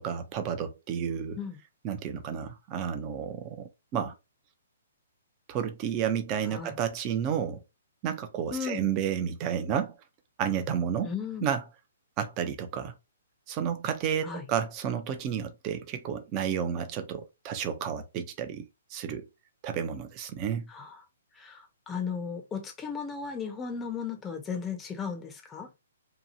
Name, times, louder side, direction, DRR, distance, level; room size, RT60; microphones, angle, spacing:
voice 1, 0.0-1.4 1.8-4.1 5.5-7.6 8.0-9.9 10.4-11.1 11.4-11.6 12.2-12.9 13.5-18.7 18.9-19.2 19.6-20.7, right 8 dB, 30° right, 0.6 m, -31 dB
voice 2, 8.5-8.8 11.0-11.5 14.2-14.4 20.7-20.9 21.4-25.7, left 6 dB, 15° left, 0.7 m, -35 dB
2.9 x 2.3 x 2.7 m
hypercardioid pair, 135°, 0 cm